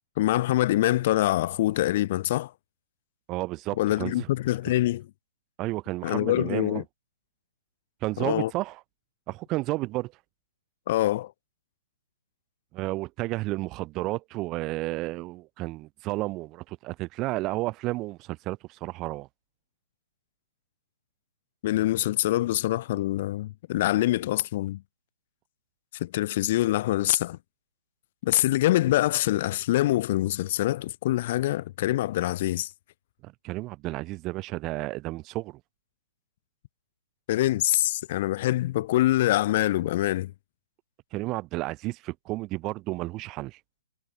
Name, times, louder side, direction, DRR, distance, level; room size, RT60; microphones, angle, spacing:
voice 1, 0.2-2.5 3.8-5.1 6.0-6.8 8.2-8.5 10.9-11.3 21.6-24.8 26.0-27.4 28.2-32.7 37.3-40.3, left 15 dB, 40° left, 0.8 m, -25 dB
voice 2, 3.3-4.3 5.6-6.8 8.0-8.8 9.3-10.1 12.7-19.3 33.2-35.6 41.1-43.6, right 20 dB, 25° right, 0.3 m, -32 dB
hypercardioid pair, 155°, 0 cm